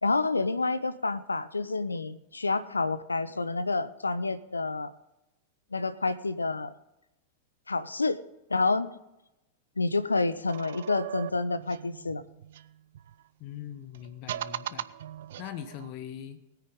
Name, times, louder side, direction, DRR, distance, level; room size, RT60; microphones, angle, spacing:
voice 1, 0.0-4.9 5.7-6.7 7.7-8.2 8.5-8.9 9.8-12.2, left 3 dB, 80° left, 14 dB, 0.6 m, -28 dB
sound 1, 10.5-13.2 13.9-15.9, right 12 dB, 60° right, 0.4 m, -40 dB
voice 2, 13.4-14.9 15.4-16.4, left 10 dB, 45° left, 10 dB, 1.0 m, -41 dB
19.5 x 9.3 x 3.7 m, 0.91 s
figure-of-eight pair, 90°, 0 cm